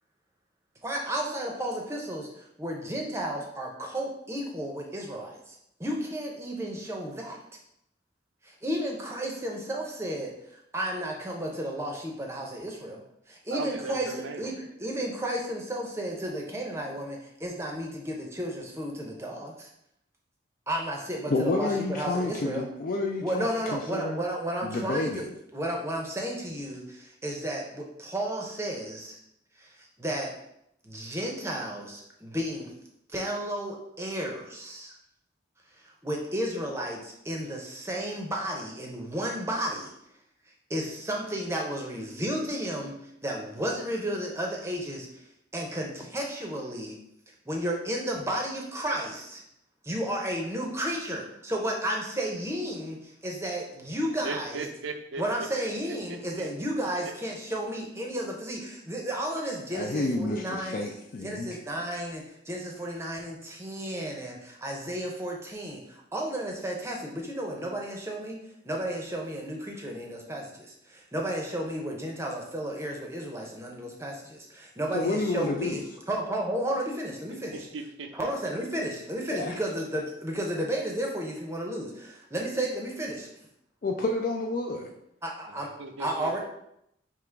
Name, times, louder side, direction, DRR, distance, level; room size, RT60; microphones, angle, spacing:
voice 1, 0.8-7.4 8.4-13.0 13.3-19.7 20.7-22.6 23.2-25.3 25.5-29.2 29.6-30.3 30.8-32.7 33.1-34.9 36.0-39.9 40.7-42.9 43.2-45.1 45.5-47.0 47.5-49.4 49.8-54.6 55.2-60.8 61.2-68.4 68.6-77.7 78.1-83.3 85.2-85.7 86.0-86.4, right 1 dB, 15° right, 0 dB, 0.6 m, -33 dB
voice 2, 13.5-14.5 54.2-55.2 56.1-56.5 77.5-78.3 85.6-86.4, right 3 dB, 85° right, 6 dB, 0.5 m, -37 dB
voice 3, 21.3-24.2 24.6-25.2 59.7-61.5 74.9-75.8 79.3-79.5 83.8-84.9, left 2 dB, 45° left, 1 dB, 0.3 m, -29 dB
3.6 x 2.9 x 4.5 m, 0.77 s
head